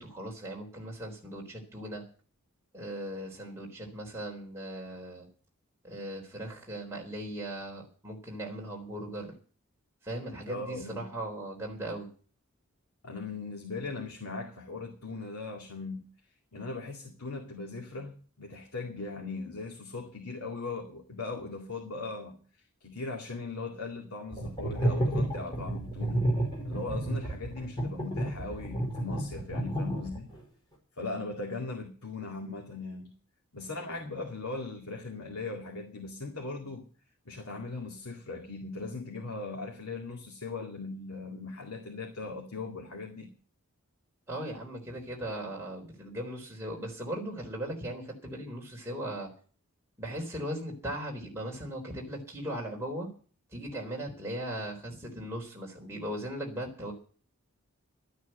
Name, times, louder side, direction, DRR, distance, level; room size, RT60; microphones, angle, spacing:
voice 1, 0.0-2.0 2.7-5.3 5.8-9.3 10.0-12.1 44.3-49.3 50.0-53.1 53.5-56.9, right 1 dB, 10° right, 3.9 m, -38 dB
voice 2, 10.5-11.1 13.0-16.0 16.5-22.4 22.8-26.3 26.6-30.3 31.0-33.1 33.5-36.9 37.3-43.3, left 3 dB, 85° left, 2.3 m, -39 dB
sound 1, 24.3-30.4, right 1 dB, 20° left, 5.3 m, -30 dB
12.5 x 9.3 x 7.8 m
head